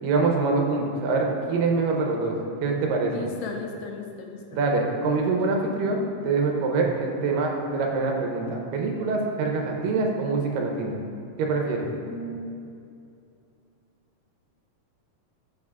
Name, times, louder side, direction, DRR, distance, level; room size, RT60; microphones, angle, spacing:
voice 1, 0.0-3.2 4.5-11.0 11.4-11.9, right 3 dB, 80° right, 1 dB, 2.4 m, -25 dB
voice 2, 3.1-4.6 12.1-12.5, left 3 dB, 80° left, 1 dB, 2.2 m, -36 dB
14.0 x 4.9 x 2.4 m, 2.5 s
omnidirectional pair, 4.0 m